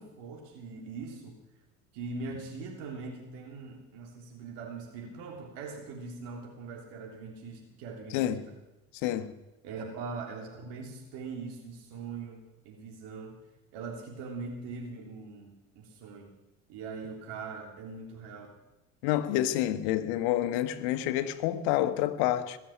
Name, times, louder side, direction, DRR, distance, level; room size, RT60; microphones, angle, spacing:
voice 1, 0.0-1.4 1.9-8.5 9.6-13.4 13.7-16.3 16.7-18.5, right 4 dB, 70° right, 3.5 m, -41 dB
voice 2, 8.1-8.4 9.0-9.3 19.0-22.6, left 13 dB, 70° left, 1.4 m, -28 dB
21.0 x 7.3 x 8.7 m
hypercardioid pair, 80°, 42 cm